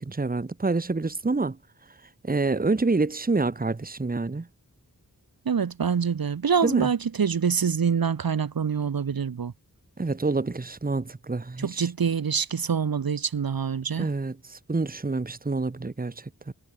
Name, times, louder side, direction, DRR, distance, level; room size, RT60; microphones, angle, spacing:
voice 1, 0.0-1.6 2.2-4.5 6.6-6.9 10.0-11.9 14.0-16.5, right 3 dB, 25° right, 1.1 m, -27 dB
voice 2, 5.5-9.5 11.6-14.1, right 6 dB, 70° right, 1.0 m, -25 dB
wide cardioid pair, 70°, 36 cm